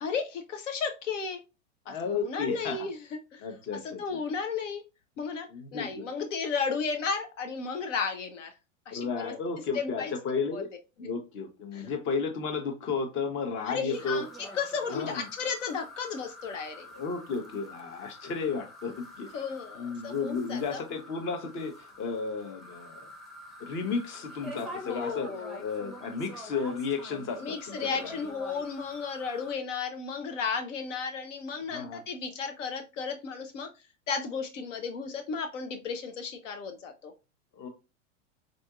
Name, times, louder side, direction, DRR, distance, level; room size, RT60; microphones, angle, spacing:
voice 1, 0.0-1.4 1.9-2.0 2.2-3.0 3.3-3.5 3.8-4.8 5.2-8.5 8.9-9.3 9.7-10.1 10.5-10.6 11.0-11.1 11.7-11.9 13.7-14.3 14.5-16.9 19.3-20.8 24.9-25.6 27.4-33.7 34.1-37.1, left 5 dB, 70° left, 5 dB, 0.7 m, -34 dB
voice 2, 1.9-2.9 3.4-4.2 5.5-6.1 8.9-10.7 11.0-14.2 14.9-15.2 16.9-19.3 19.7-23.1 23.6-25.3 25.6-28.2 31.7-32.0 37.5-37.7, left 5 dB, 30° left, 5 dB, 0.8 m, -33 dB
sound 1, 13.9-29.5, left 1 dB, ahead, 0.7 m, -46 dB
3.8 x 2.6 x 2.3 m, 0.27 s
hypercardioid pair, 100°, 38 cm